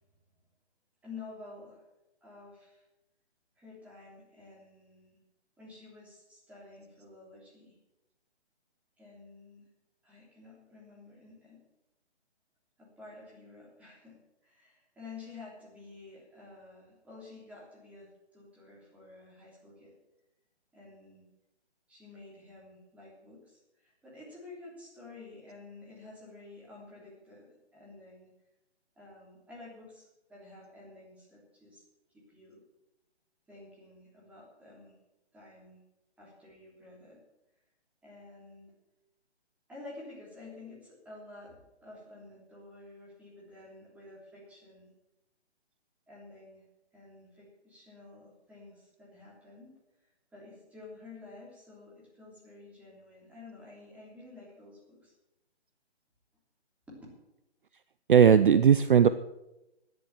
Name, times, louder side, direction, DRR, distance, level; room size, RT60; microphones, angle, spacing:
voice 1, 1.0-1.8 2.2-2.8 3.6-5.2 5.6-7.7 9.0-9.7 10.0-11.6 12.8-19.9 20.7-21.3 21.9-28.3 28.9-31.8 32.1-32.6 33.5-34.9 35.3-35.8 36.2-37.2 38.0-38.7 39.7-44.9 46.1-46.6 46.9-49.7 50.3-55.1 56.9-57.0, left 3 dB, 5° right, -5 dB, 3.3 m, -51 dB
voice 2, 58.1-59.1, right 8 dB, 50° right, 13 dB, 0.5 m, -18 dB
12.5 x 10.5 x 7.2 m, 0.92 s
hypercardioid pair, 160°, 34 cm